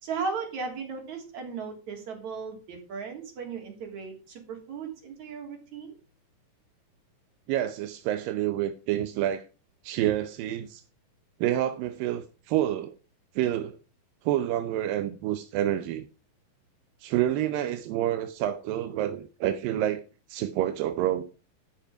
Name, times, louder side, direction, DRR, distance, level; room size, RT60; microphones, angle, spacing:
voice 1, 0.0-5.9, right 5 dB, 55° right, 4.5 m, -36 dB
voice 2, 7.5-9.5 9.8-10.8 11.4-13.0 13.4-13.8 14.3-16.1 17.0-20.0 20.3-21.2, right 12 dB, 85° right, 2.5 m, -28 dB
13.5 x 6.0 x 5.8 m
omnidirectional pair, 3.9 m